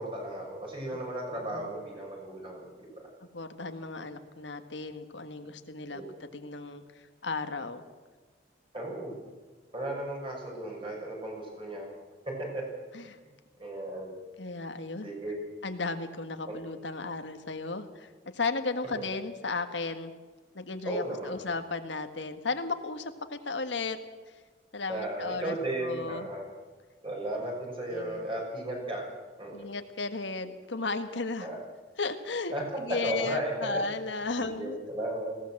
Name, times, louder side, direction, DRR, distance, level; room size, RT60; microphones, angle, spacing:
voice 1, 0.0-3.1 5.9-6.0 8.7-9.2 9.7-11.9 12.3-12.6 13.6-14.1 15.0-15.4 16.5-16.6 20.8-21.4 24.9-26.4 27.0-29.0 29.4-29.6 31.4-31.6 32.5-32.6 33.0-33.5 34.4-35.4, right 1 dB, 30° right, -1 dB, 6.2 m, -35 dB
voice 2, 1.3-1.8 3.3-6.0 6.3-6.8 7.2-7.8 12.9-13.2 14.4-15.1 15.6-20.1 20.5-24.0 24.7-26.3 27.9-28.2 29.5-31.5 32.0-32.5 32.8-34.8, left 3 dB, 80° left, 7 dB, 1.6 m, -35 dB
20.0 x 16.5 x 7.7 m, 1.4 s
head